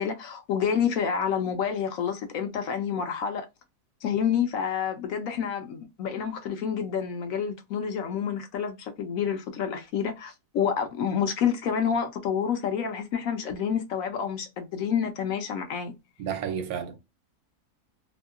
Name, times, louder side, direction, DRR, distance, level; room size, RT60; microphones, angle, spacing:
voice 1, 0.0-3.5 4.0-15.9, left 7 dB, 70° left, 1.0 m, -28 dB
voice 2, 16.2-17.0, right 8 dB, 75° right, 1.1 m, -31 dB
2.8 x 2.7 x 2.4 m
omnidirectional pair, 1.6 m